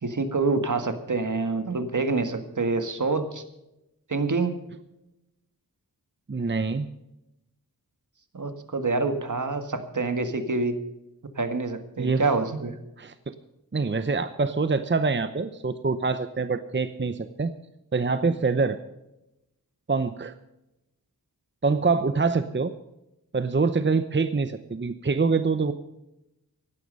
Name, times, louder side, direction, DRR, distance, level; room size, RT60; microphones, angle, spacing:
voice 1, 0.0-3.4 4.1-4.6 8.3-10.8 11.4-12.8, right 3 dB, 55° right, 8 dB, 1.9 m, -26 dB
voice 2, 6.3-6.9 12.0-12.3 13.0-13.1 13.7-17.5 17.9-18.8 19.9-20.3 21.6-22.7 23.3-25.7, right 4 dB, 30° right, 11 dB, 0.8 m, -25 dB
16.5 x 11.5 x 5.5 m, 0.90 s
wide cardioid pair, 70°, 36 cm